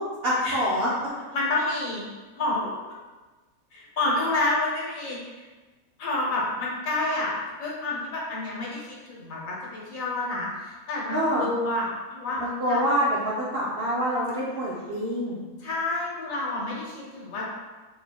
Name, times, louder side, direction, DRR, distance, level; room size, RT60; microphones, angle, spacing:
voice 1, 0.2-0.9 11.1-11.5 12.4-15.4, equal, 65° right, -7 dB, 0.6 m, -26 dB
voice 2, 1.3-2.0 2.3-2.7 3.7-5.5 6.0-7.3 7.6-12.4 12.7-12.8 14.5-14.9 15.6-17.5, left 2 dB, 70° left, -3 dB, 1.2 m, -29 dB
4.0 x 3.1 x 2.2 m, 1.2 s
omnidirectional pair, 1.5 m